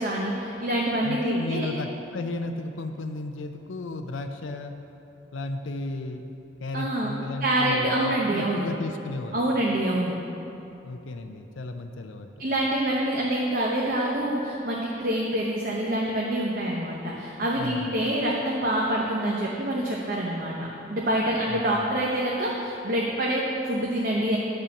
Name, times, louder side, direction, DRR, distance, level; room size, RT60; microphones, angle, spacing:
voice 1, 0.0-1.7 6.7-7.1 7.4-8.7 9.3-10.1 12.4-24.4, right 1 dB, 45° right, -3 dB, 0.9 m, -26 dB
voice 2, 1.0-4.8 5.3-6.2 6.6-9.4 10.8-12.3 17.5-18.0 21.5-21.9, left 2 dB, 80° left, 6 dB, 0.5 m, -34 dB
10.5 x 5.6 x 7.0 m, 2.9 s
head